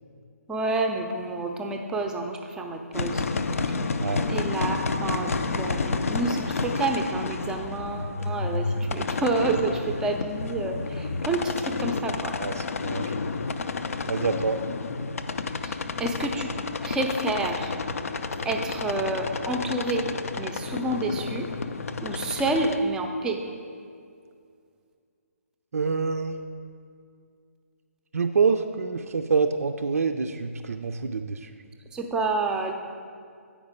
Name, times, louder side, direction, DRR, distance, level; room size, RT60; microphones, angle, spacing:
voice 1, 0.5-3.2 4.3-12.3 15.6-15.7 16.0-16.5 16.8-17.7 18.4-20.1 20.4-21.4 22.0-23.4 31.9-32.7, right 2 dB, 10° right, 3 dB, 0.5 m, -29 dB
sound 1, 2.9-22.8, left 4 dB, 65° left, 0.5 m, -30 dB
voice 2, 12.4-13.3 14.1-14.6 25.7-26.4 28.1-31.5, right 5 dB, 70° right, 7 dB, 0.4 m, -26 dB
8.6 x 4.9 x 5.1 m, 2.3 s
figure-of-eight pair, 140°, 8 cm